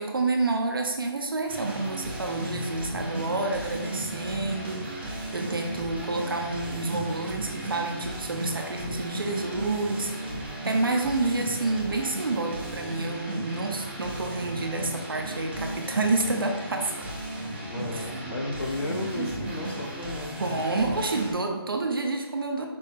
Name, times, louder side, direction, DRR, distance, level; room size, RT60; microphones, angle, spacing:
voice 1, 0.0-10.4 10.6-16.9 17.9-18.2 19.1-19.3 20.4-22.7, right 3 dB, 60° right, 3 dB, 0.8 m, -29 dB
sound 1, 1.5-21.3, right 1 dB, 25° right, 0.9 m, -35 dB
voice 2, 17.6-20.5, left 2 dB, 80° left, 2 dB, 1.2 m, -33 dB
5.2 x 2.8 x 3.7 m, 1.1 s
figure-of-eight pair, 175°, 13 cm